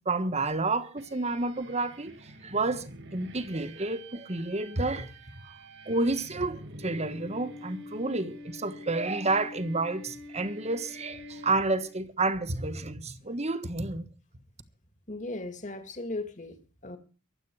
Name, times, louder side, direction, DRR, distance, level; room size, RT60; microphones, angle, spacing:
voice 1, 0.0-2.9 3.1-5.1 5.9-14.1, right 2 dB, 35° right, 1.4 m, -30 dB
sound 1, 1.0-12.0, left 1 dB, 60° right, 2.0 m, -46 dB
voice 2, 15.1-17.0, left 2 dB, 40° left, 2.4 m, -37 dB
23.5 x 8.5 x 4.8 m
head